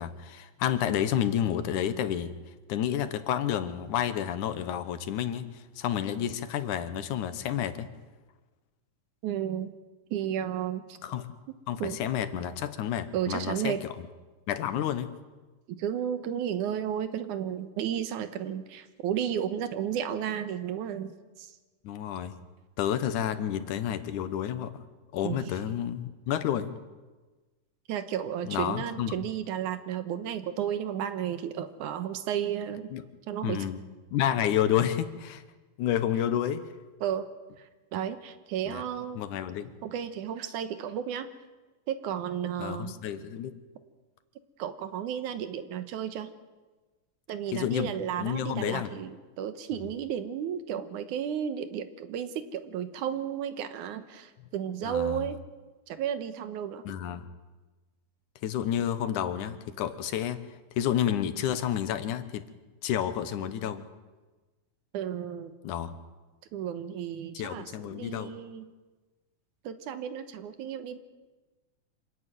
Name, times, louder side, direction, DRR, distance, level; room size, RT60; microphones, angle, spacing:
voice 1, 0.0-2.3 2.7-7.9 11.0-11.3 11.7-13.8 14.5-15.1 21.8-22.4 22.8-24.7 25.1-26.8 28.5-29.2 32.9-33.0 33.4-33.8 34.1-35.4 35.8-36.7 38.7-38.8 39.2-39.7 42.6-43.5 47.5-47.9 48.2-48.9 54.8-55.2 56.9-57.2 58.4-60.4 60.8-62.5 62.8-63.8 65.6-65.9 67.3-68.3, left 10 dB, 80° left, 11 dB, 2.6 m, -30 dB
voice 2, 9.2-9.7 10.1-11.0 11.8-12.0 13.1-13.8 15.7-21.5 25.2-25.4 27.9-32.9 33.3-33.6 37.0-37.3 37.6-39.2 39.8-41.3 41.9-42.9 44.6-46.3 47.3-55.4 55.9-56.8 64.9-65.5 66.5-68.7 69.6-71.0, right 9 dB, 80° right, 10 dB, 2.5 m, -33 dB
26.0 x 12.5 x 9.3 m, 1.2 s
omnidirectional pair, 3.5 m